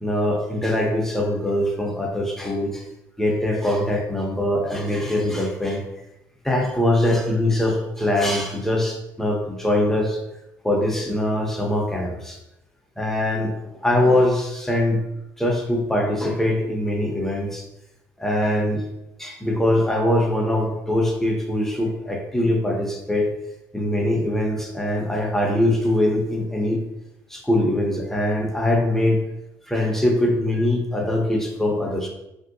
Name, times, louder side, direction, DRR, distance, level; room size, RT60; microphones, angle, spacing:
voice 1, 0.0-2.8 3.2-5.8 6.4-10.2 10.6-12.4 13.0-13.5 13.8-15.0 15.4-17.6 18.2-18.8 19.2-23.3 23.7-26.8 27.3-29.2 29.7-32.1, left 1 dB, 5° left, 0 dB, 0.7 m, -22 dB
3.0 x 2.7 x 2.6 m, 0.91 s
supercardioid pair, 85°, 8 cm